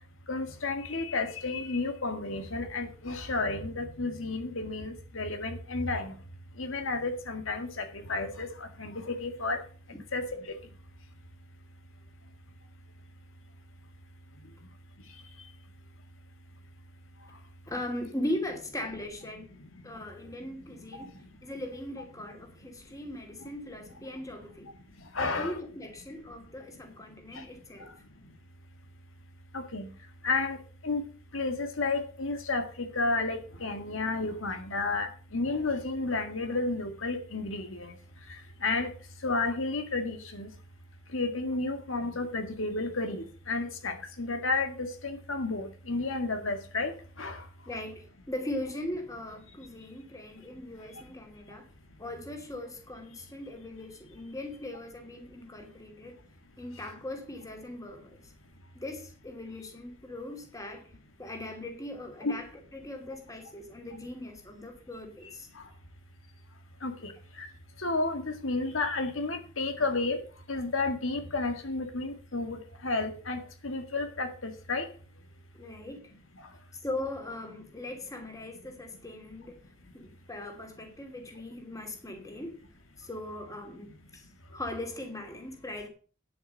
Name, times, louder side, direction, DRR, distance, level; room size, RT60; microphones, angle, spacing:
voice 1, 0.3-6.1 6.6-9.6 10.1-10.3 20.9-21.1 25.1-25.5 27.3-27.4 29.5-29.9 30.2-30.6 30.8-31.0 31.3-37.9 38.6-38.9 39.2-40.5 41.1-47.4 62.2-62.3 66.8-67.1 67.4-67.5 67.8-70.2 70.5-74.9, left 3 dB, 80° left, 1.8 m, -32 dB
voice 2, 17.7-19.5 19.8-24.7 25.2-27.9 47.7-51.7 52.0-56.2 56.6-58.3 58.7-60.9 61.2-65.5 75.5-76.1 76.8-79.6 79.9-82.6 83.0-84.3 84.5-85.9, left 1 dB, 15° left, 2.7 m, -39 dB
9.6 x 7.9 x 6.5 m
head